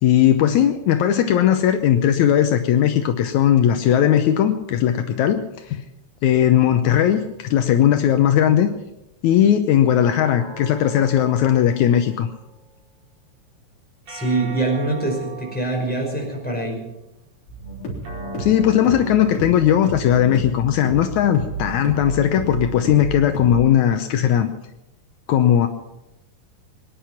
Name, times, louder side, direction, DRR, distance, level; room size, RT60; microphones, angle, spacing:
voice 1, 0.0-5.8 6.2-8.7 9.2-12.3 18.4-24.5 25.3-25.7, left 10 dB, 75° left, 7 dB, 2.1 m, -18 dB
sound 1, 10.1-12.7 14.1-16.6 18.0-20.7, right 4 dB, 55° right, 5.9 m, -39 dB
voice 2, 14.1-16.9, right 2 dB, 5° left, -2 dB, 5.0 m, -24 dB
sound 2, 17.5-23.6, right 3 dB, 45° left, 4.5 m, -31 dB
23.5 x 10.5 x 5.9 m, 0.94 s
omnidirectional pair, 3.5 m